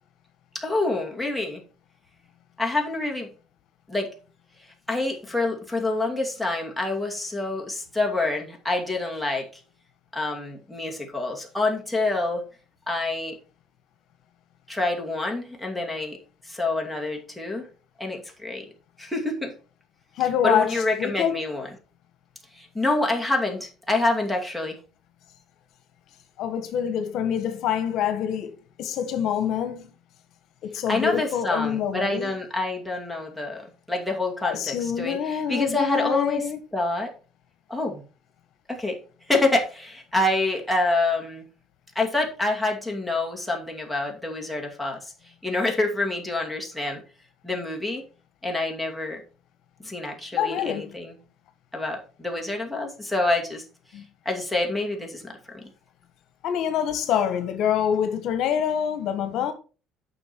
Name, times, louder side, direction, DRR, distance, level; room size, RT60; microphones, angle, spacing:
voice 1, 0.5-1.6 2.6-3.3 3.9-4.1 4.9-9.5 10.1-12.4 12.9-13.4 14.7-16.2 16.5-17.7 18.0-18.7 19.0-19.5 20.4-21.7 22.5-24.8 30.9-36.4 36.7-37.1 37.7-38.0 38.7-39.0 39.3-41.5 41.9-45.1 45.4-47.0 47.4-48.0 48.4-49.2 49.8-51.1 51.7-53.6 54.3-55.7, left 2 dB, ahead, 2.5 m, -27 dB
voice 2, 20.2-21.4 26.4-29.9 30.6-32.3 34.4-36.6 50.3-51.0 53.9-54.0 56.4-59.5, left 9 dB, 65° left, 1.4 m, -26 dB
8.9 x 6.1 x 4.5 m
cardioid pair, 115°, 0 cm